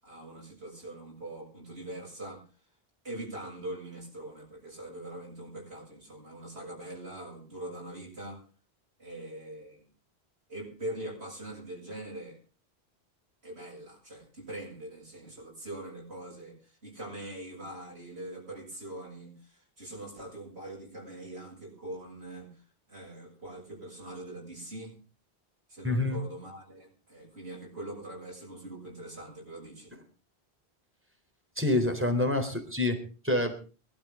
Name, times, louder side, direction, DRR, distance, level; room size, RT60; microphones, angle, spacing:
voice 1, 0.0-2.4 3.0-8.4 9.0-9.9 10.5-12.4 13.4-22.5 22.9-25.0 25.7-29.9, right 1 dB, 75° right, -2 dB, 7.3 m, -42 dB
voice 2, 25.8-26.2 31.6-33.0 33.2-33.5, left 2 dB, 10° right, 4 dB, 3.7 m, -26 dB
23.5 x 12.5 x 3.7 m, 0.35 s
omnidirectional pair, 1.1 m